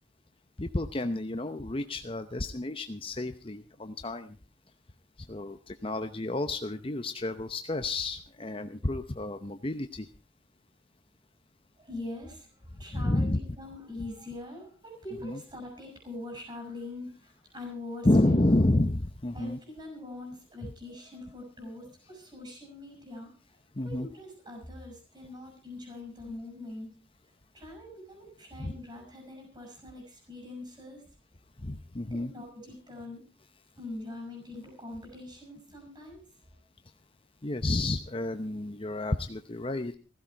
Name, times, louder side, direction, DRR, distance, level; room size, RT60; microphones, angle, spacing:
voice 1, 0.6-4.4 5.2-10.1 12.9-13.4 15.2-15.4 18.0-19.6 23.7-24.1 28.6-28.7 31.6-32.3 37.4-40.0, left 2 dB, 30° left, 8 dB, 0.8 m, -30 dB
voice 2, 11.8-18.6 19.3-23.4 23.8-27.1 27.5-31.1 32.1-33.3 33.8-36.2 36.5-36.6, left 2 dB, 30° right, 2 dB, 6.3 m, -43 dB
16.0 x 16.0 x 4.6 m, 0.34 s
head